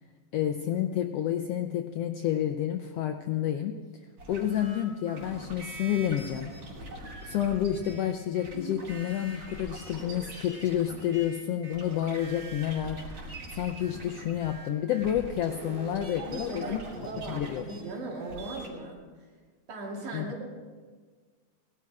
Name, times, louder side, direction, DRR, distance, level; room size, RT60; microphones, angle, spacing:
voice 1, 0.3-3.8 4.3-6.5 7.2-13.0 13.5-16.8 17.3-17.6 20.1-20.2, left 10 dB, 80° left, 6 dB, 1.4 m, -29 dB
sound 1, 4.2-18.7, right 1 dB, 60° right, 3.8 m, -43 dB
voice 2, 16.2-19.3 19.7-20.5, right 2 dB, 80° right, -1 dB, 3.8 m, -39 dB
18.5 x 12.0 x 4.8 m, 1.5 s
omnidirectional pair, 3.4 m